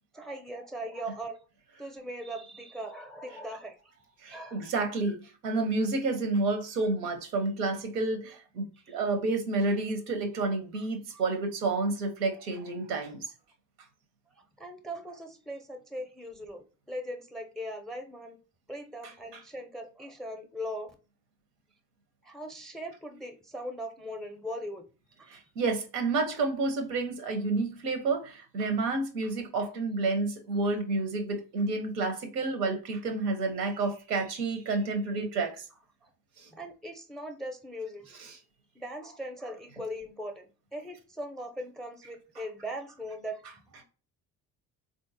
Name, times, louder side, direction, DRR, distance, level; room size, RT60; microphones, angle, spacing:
voice 1, 0.1-1.4 1.8-3.8 4.3-4.7 5.1-5.2 8.9-9.0 10.7-10.8 11.1-11.2 14.6-18.4 18.7-20.9 22.2-24.9 25.2-25.3 36.0-36.1 36.5-38.2 38.7-43.8, equal, ahead, 0.4 m, -40 dB
voice 2, 4.2-5.2 5.4-13.2 19.0-19.4 25.3-35.6 36.4-36.5, right 3 dB, 90° right, 0.7 m, -30 dB
3.6 x 2.5 x 2.5 m
hypercardioid pair, 55°, 47 cm